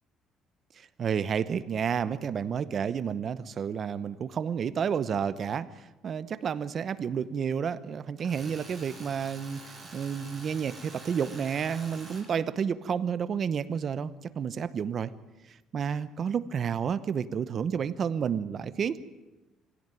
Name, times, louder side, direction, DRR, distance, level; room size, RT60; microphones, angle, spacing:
voice 1, 0.8-9.6 9.9-15.1 15.7-19.0, right 7 dB, 35° right, 14 dB, 0.9 m, -30 dB
Tools, 8.2-12.2, right 2 dB, 5° right, 6.3 m, -47 dB
24.0 x 16.5 x 9.2 m, 1.1 s
cardioid pair, 155°, 0 cm